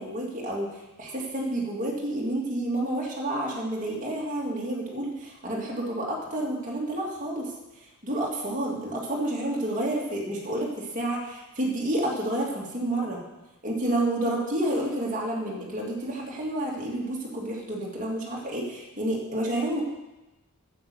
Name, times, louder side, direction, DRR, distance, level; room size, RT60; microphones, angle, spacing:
voice 1, 0.0-7.5 7.8-13.2 13.6-19.8, right 1 dB, 35° right, -3 dB, 2.5 m, -30 dB
9.4 x 8.0 x 7.0 m, 1.0 s
head